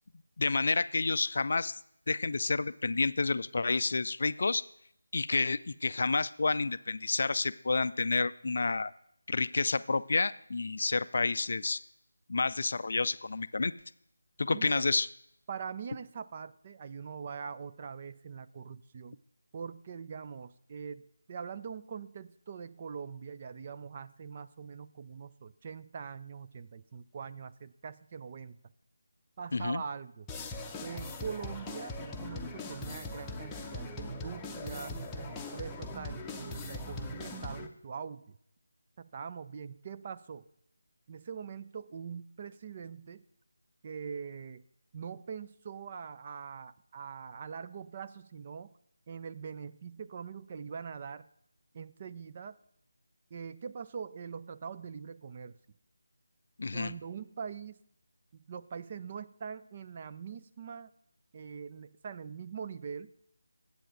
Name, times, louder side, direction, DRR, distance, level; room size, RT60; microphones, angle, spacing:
voice 1, 0.4-1.8 2.1-4.6 5.1-8.9 9.3-11.8 12.3-13.7 14.4-15.1 29.5-29.8 56.6-56.9, left 3 dB, 50° left, 15 dB, 0.4 m, -29 dB
voice 2, 14.5-14.9 15.5-19.2 19.5-21.0 21.3-28.6 29.4-30.3 30.8-38.4 39.0-40.5 41.1-43.2 43.8-44.6 44.9-48.7 49.1-51.3 51.7-52.6 53.3-55.6 56.7-57.8 58.3-60.9 61.3-63.1, right 6 dB, 30° right, 12 dB, 0.5 m, -43 dB
sound 1, 30.3-37.7, left 2 dB, 10° left, 0.8 m, -41 dB
9.9 x 8.4 x 6.3 m, 0.71 s
figure-of-eight pair, 160°, 0 cm